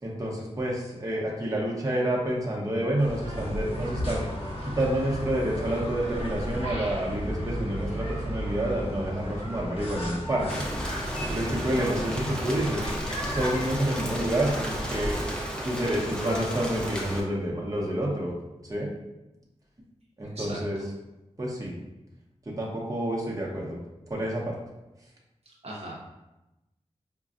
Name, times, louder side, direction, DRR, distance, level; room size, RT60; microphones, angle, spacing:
voice 1, 0.0-4.3 4.6-10.5 11.3-12.9 13.2-15.2 15.6-18.3 18.6-18.9 20.2-20.8 21.4-21.7 22.5-23.8 24.1-24.5, right 1 dB, 30° right, -3 dB, 0.8 m, -28 dB
sound 1, 3.0-15.2, equal, 50° left, 1.1 m, -34 dB
Rain, 10.5-17.2, equal, 5° left, 0.6 m, -33 dB
voice 2, 25.5-26.0, right 1 dB, 60° right, -4 dB, 0.7 m, -39 dB
5.2 x 2.2 x 2.4 m, 0.97 s
wide cardioid pair, 65°, 12 cm